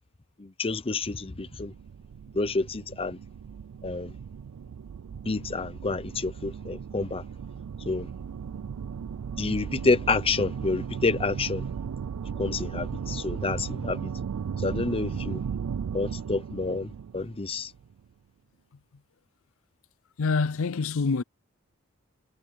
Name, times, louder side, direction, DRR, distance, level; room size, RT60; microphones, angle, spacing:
voice 1, 0.4-1.7 2.3-3.2 3.8-4.1 5.3-7.2 7.9-8.1 9.4-11.7 12.4-14.1 14.6-15.4 15.9-17.7, left 3 dB, 25° left, 0.7 m, -28 dB
sound 1, 1.0-18.0, right 7 dB, 90° right, 0.4 m, -36 dB
voice 2, 20.2-21.2, left 4 dB, 65° left, 0.5 m, -26 dB
head